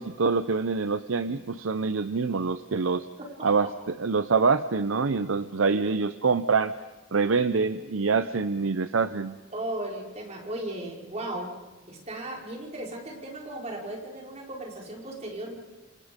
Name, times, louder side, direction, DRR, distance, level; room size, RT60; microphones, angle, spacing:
voice 1, 0.0-3.1 3.4-6.7 7.1-9.4, right 4 dB, 90° right, 11 dB, 0.7 m, -25 dB
voice 2, 9.5-11.5 11.9-15.6, right 1 dB, 35° right, -1 dB, 4.7 m, -36 dB
28.0 x 27.0 x 5.2 m, 1.1 s
head